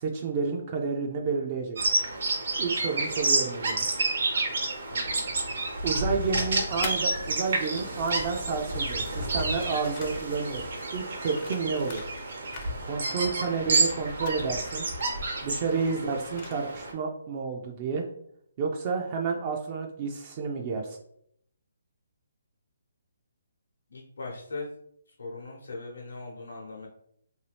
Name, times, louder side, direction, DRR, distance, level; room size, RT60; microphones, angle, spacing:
voice 1, 0.0-1.8 2.6-3.8 5.8-12.1 12.8-14.9 15.4-18.1 18.6-21.0, right 4 dB, 35° right, 2 dB, 0.4 m, -30 dB
Bird vocalization bird call bird song, 1.8-16.9, right 2 dB, 65° right, 0.8 m, -30 dB
voice 2, 2.9-3.2 4.9-5.3 16.0-16.2 23.9-24.7 25.1-26.9, left 3 dB, 80° left, -2 dB, 0.8 m, -40 dB
sound 1, 6.0-7.4 7.6-12.3 12.5-13.1 13.4-16.8, left 4 dB, 35° left, 0.5 m, -45 dB
2.6 x 2.3 x 3.3 m, 0.70 s
hypercardioid pair, 150°, 0 cm